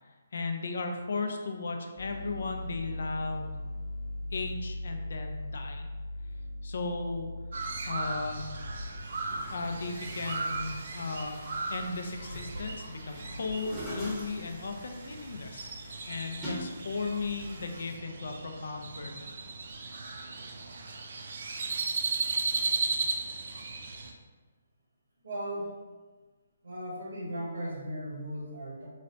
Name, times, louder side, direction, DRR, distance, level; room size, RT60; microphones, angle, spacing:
voice 1, 0.3-3.5 4.3-5.9 6.6-7.3 7.9-8.4 9.5-11.4 11.7-15.7 16.1-19.3, left 3 dB, 65° left, 4 dB, 0.4 m, -36 dB
sound 1, 2.0-19.5, left 1 dB, 30° left, 1.0 m, -43 dB
Crow, 7.5-24.1, right 4 dB, 55° right, 0.4 m, -36 dB
Chatter / Gurgling / Tap, 8.8-18.0, equal, 10° right, 0.8 m, -45 dB
voice 2, 25.2-25.7 26.6-28.9, equal, 85° right, -5 dB, 1.2 m, -37 dB
4.0 x 2.1 x 2.5 m, 1.4 s
hypercardioid pair, 160°, 0 cm